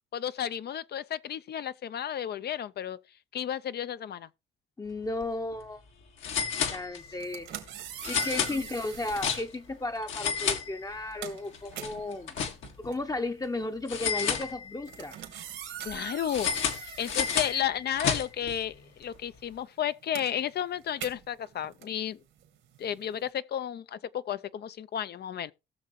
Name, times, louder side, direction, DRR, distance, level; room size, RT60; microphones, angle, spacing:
voice 1, 0.1-3.0 3.3-4.3 8.5-8.7 15.8-16.5 16.8-22.2 22.8-25.5, left 10 dB, 55° left, 0.6 m, -33 dB
voice 2, 4.8-5.8 6.7-7.5 8.1-12.3 12.8-15.2, left 2 dB, 20° left, 0.8 m, -34 dB
sound 1, 5.0-5.2 5.5-5.6 6.2-7.3 8.0-9.7 10.0-11.2 11.5-12.9 13.9-15.0 16.3-18.6, left 7 dB, 80° left, 1.9 m, -31 dB
sound 2, 7.1-9.5 10.3-10.5 10.8-18.4 18.6-23.3, right 10 dB, 85° right, 2.4 m, -44 dB
18.0 x 6.6 x 3.1 m
cardioid pair, 90°, 20 cm